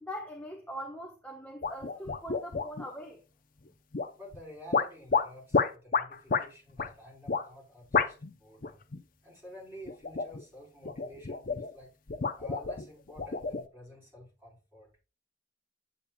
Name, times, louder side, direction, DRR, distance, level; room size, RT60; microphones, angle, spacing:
voice 1, 0.0-3.2, equal, 5° left, 1.0 m, -42 dB
sound 1, 1.6-2.9 3.9-4.4 4.7-6.5 6.8-6.9 7.3-7.5 7.9-8.3 8.6-9.0 9.9-10.4 10.8-11.7 12.1-13.6, left 5 dB, 45° left, 0.6 m, -30 dB
voice 2, 4.1-8.8 9.2-11.9 12.4-14.9, left 1 dB, 10° right, 4.2 m, -50 dB
8.5 x 8.4 x 2.3 m
head